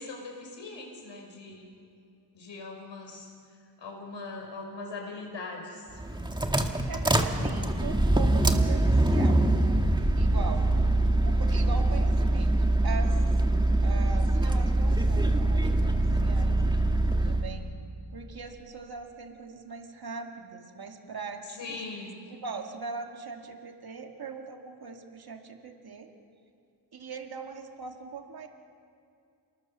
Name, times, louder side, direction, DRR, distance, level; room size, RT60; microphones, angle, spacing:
voice 1, 0.0-1.7 2.3-3.3 3.8-6.0 21.6-22.2, left 3 dB, 90° left, 1 dB, 5.6 m, -40 dB
sound 1, 5.9-17.5, right 1 dB, 10° right, 1.6 m, -24 dB
voice 2, 6.6-9.4 10.2-10.7 11.2-12.5 12.8-13.2 13.8-15.9 16.2-16.6 17.3-17.7 18.1-26.1 26.9-28.5, right 4 dB, 55° right, 3 dB, 2.3 m, -40 dB
29.5 x 20.0 x 7.0 m, 2.4 s
wide cardioid pair, 110°, 43 cm